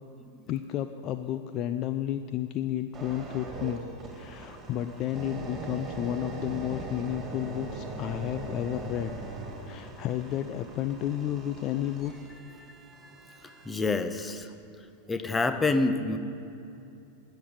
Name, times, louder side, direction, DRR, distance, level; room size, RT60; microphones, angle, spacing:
voice 1, 0.5-3.8 4.1-9.2 9.6-12.1, left 11 dB, 35° left, 10 dB, 0.4 m, -32 dB
sound 1, 2.9-13.9 14.4-14.6, right 2 dB, 20° right, 2.6 m, -41 dB
voice 2, 13.3-14.5 15.1-16.2, left 3 dB, 15° left, 9 dB, 0.8 m, -27 dB
13.0 x 8.0 x 8.7 m, 2.7 s
figure-of-eight pair, 90°, 0 cm